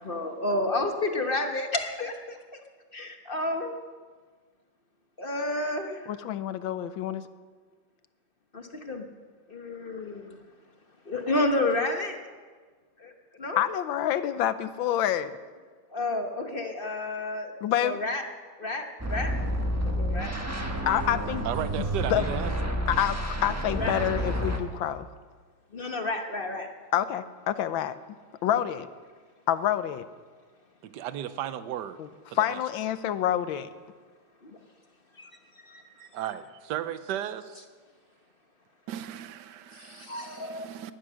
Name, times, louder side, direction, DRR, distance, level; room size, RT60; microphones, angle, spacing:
voice 1, 0.0-2.6 2.9-3.8 5.2-6.1 8.5-9.0 9.5-10.4 11.0-12.2 13.0-13.1 13.4-13.6 15.9-17.5 17.8-18.2 18.6-19.3 19.8-20.3 23.8-24.0 25.7-26.7 34.4-34.6 35.2-35.3 35.6-35.8 39.7-40.7, left 2 dB, 35° left, 4 dB, 1.1 m, -30 dB
voice 2, 6.1-7.2 13.6-15.4 17.6-18.0 20.9-21.5 21.8-22.2 22.9-25.1 26.9-28.0 28.4-28.9 29.5-30.1 32.0-32.1 32.3-33.7, left 11 dB, 85° left, 13 dB, 1.5 m, -27 dB
sound 1, 19.0-24.6, equal, 10° right, 1.1 m, -30 dB
voice 3, 21.4-22.5 30.8-32.0 32.3-32.6 36.0-37.6 38.9-40.9, right 10 dB, 70° right, 12 dB, 1.3 m, -35 dB
19.5 x 11.5 x 6.3 m, 1.5 s
omnidirectional pair, 2.1 m